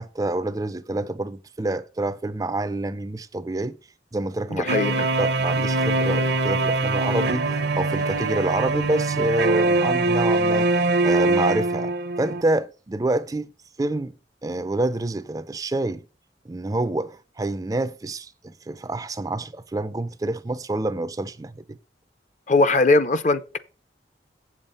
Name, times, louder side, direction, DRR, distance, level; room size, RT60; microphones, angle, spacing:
voice 1, 0.0-3.8 4.1-4.7 5.2-10.7 11.0-11.9 12.2-13.5 13.8-14.1 14.4-16.0 16.5-21.8, right 2 dB, 20° right, 0.4 m, -27 dB
voice 2, 4.5-5.1 22.5-23.6, left 3 dB, 45° left, 0.6 m, -20 dB
sound 1, 4.7-12.4, right 2 dB, 70° right, 0.7 m, -22 dB
7.7 x 7.2 x 5.3 m
head